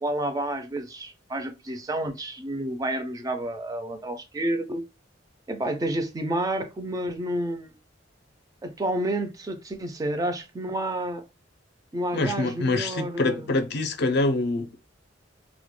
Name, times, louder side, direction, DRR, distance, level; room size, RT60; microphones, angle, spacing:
voice 1, 0.0-4.8 5.5-7.7 8.6-11.2 11.9-13.4, right 1 dB, 20° right, 0.3 m, -30 dB
voice 2, 12.1-14.9, left 2 dB, 60° left, 0.4 m, -25 dB
2.2 x 2.1 x 3.0 m
head